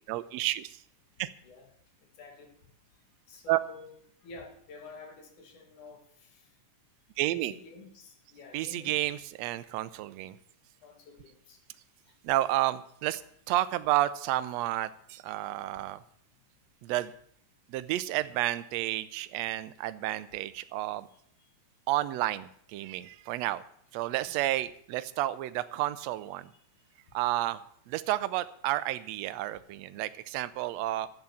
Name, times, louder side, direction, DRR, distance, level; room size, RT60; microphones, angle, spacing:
voice 1, 0.1-0.8 1.2-1.3 3.5-3.6 7.2-7.5 8.5-10.4 12.2-13.2 13.5-16.0 16.8-17.1 17.7-21.1 21.9-23.6 23.9-26.5 27.1-27.6 27.9-31.1, right 15 dB, 75° right, 14 dB, 1.7 m, -31 dB
voice 2, 2.2-2.5 3.3-3.9 4.2-6.5 7.3-9.0 10.8-11.6 24.3-24.4, left 3 dB, 85° left, 4 dB, 3.6 m, -49 dB
12.0 x 9.1 x 7.1 m, 0.66 s
omnidirectional pair, 3.4 m